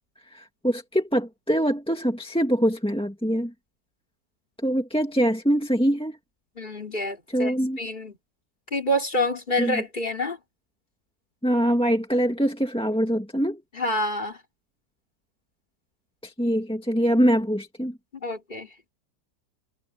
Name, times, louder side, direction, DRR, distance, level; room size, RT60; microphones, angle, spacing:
voice 1, 0.3-3.5 4.6-6.2 7.3-7.8 9.6-9.8 11.4-13.6 16.2-17.9, equal, 5° left, 1.8 m, -24 dB
voice 2, 6.6-8.1 8.7-10.4 13.7-14.4 18.1-18.7, left 1 dB, 25° left, 3.0 m, -27 dB
omnidirectional pair, 1.9 m